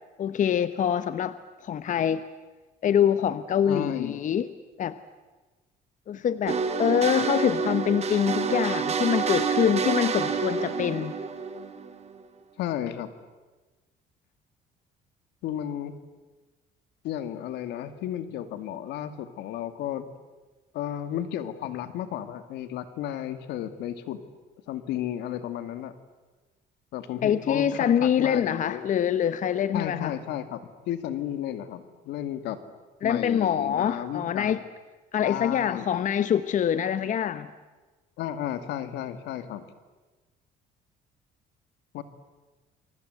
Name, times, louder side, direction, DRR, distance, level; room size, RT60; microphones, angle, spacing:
voice 1, 0.2-2.3 2.8-4.5 4.8-5.0 6.1-11.1 27.2-30.1 33.0-34.6 35.1-37.5, left 9 dB, 50° left, 13 dB, 1.0 m, -25 dB
voice 2, 3.6-4.3 12.6-13.1 15.4-15.9 17.0-20.1 20.7-24.2 24.7-25.9 26.9-28.9 29.7-32.6 33.0-34.6 35.2-35.9 38.2-39.6 41.9-42.0, left 11 dB, 85° left, 10 dB, 2.4 m, -33 dB
sound 1, 6.5-12.2, right 5 dB, 40° right, 3.1 m, -28 dB
29.0 x 24.0 x 8.1 m, 1.2 s
cardioid pair, 110°, 17 cm